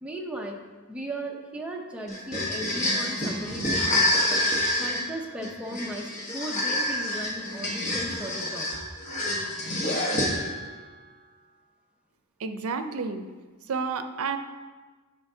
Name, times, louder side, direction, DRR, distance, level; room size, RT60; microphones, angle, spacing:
voice 1, 0.0-0.6 0.9-4.4 4.8-8.7, right 1 dB, 5° right, 0 dB, 0.7 m, -37 dB
sound 1, 2.1-10.7, left 1 dB, 35° left, 1.2 m, -27 dB
voice 2, 12.4-13.3 13.7-14.4, right 5 dB, 85° right, 8 dB, 0.5 m, -30 dB
9.6 x 5.6 x 2.7 m, 1.4 s
head